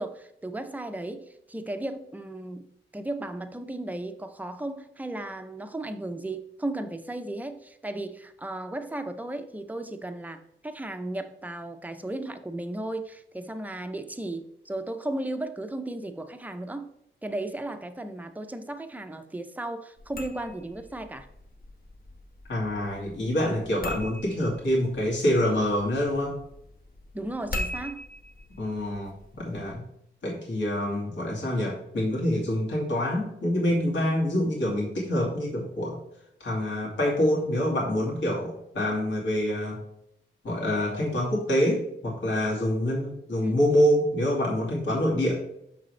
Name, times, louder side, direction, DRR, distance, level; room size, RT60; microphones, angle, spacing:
voice 1, 0.0-2.7 2.9-16.9 17.2-21.3 27.1-28.1 43.4-43.6, right 1 dB, 10° right, 8 dB, 0.6 m, -35 dB
sound 1, 20.0-29.7, left 1 dB, 45° left, 1.1 m, -41 dB
voice 2, 22.5-26.4 28.6-29.8 30.2-36.0 36.4-39.8 40.4-45.4, left 1 dB, 65° left, -4 dB, 2.4 m, -26 dB
6.5 x 6.1 x 3.2 m, 0.79 s
cardioid pair, 100°, 20 cm